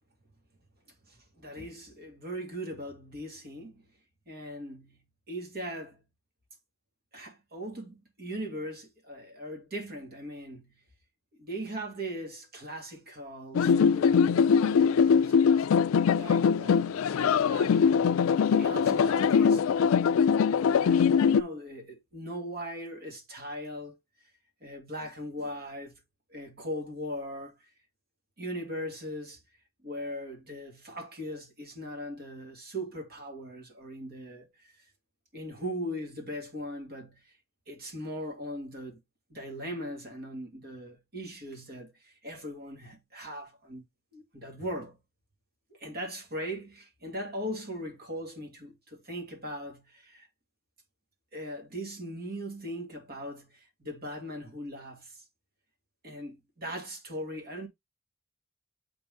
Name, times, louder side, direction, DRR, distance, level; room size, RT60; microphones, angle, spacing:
voice 1, 1.1-3.9 4.3-6.0 7.1-10.8 11.4-19.6 20.6-24.3 24.6-26.0 26.3-27.5 28.4-29.4 29.8-34.9 35.3-37.4 37.7-39.0 39.3-43.8 44.1-45.0 45.7-50.3 51.3-55.2 56.0-57.7, equal, 45° right, 2.1 m, -39 dB
sound 1, 13.5-21.4, left 6 dB, 75° left, 0.3 m, -22 dB
7.6 x 3.9 x 3.5 m
head